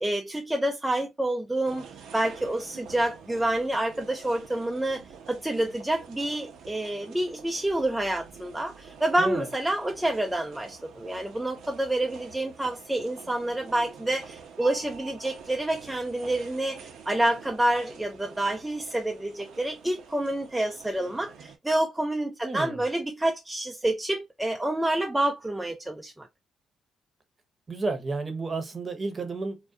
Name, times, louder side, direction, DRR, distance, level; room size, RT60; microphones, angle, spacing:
voice 1, 0.0-1.9 2.1-26.3, right 1 dB, 10° right, 0.3 m, -28 dB
sound 1, 1.6-21.6, right 6 dB, 75° right, 0.5 m, -47 dB
voice 2, 22.4-22.8 27.7-29.6, right 3 dB, 30° right, 0.7 m, -31 dB
2.3 x 2.1 x 2.6 m
cardioid pair, 90°, 0 cm